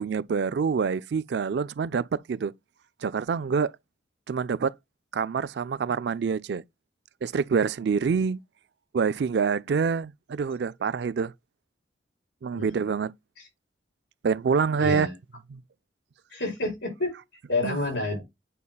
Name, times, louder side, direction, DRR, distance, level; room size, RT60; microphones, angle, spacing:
voice 1, 0.0-2.5 3.0-3.7 4.3-4.7 5.1-6.6 7.2-8.4 8.9-11.3 12.4-13.1 14.2-15.1 15.5-15.6 17.6-17.8, right 5 dB, 65° right, 0.3 m, -26 dB
voice 2, 14.8-15.1 16.3-17.1 17.5-18.2, left 2 dB, 70° left, 5.2 m, -29 dB
8.3 x 5.5 x 2.3 m
head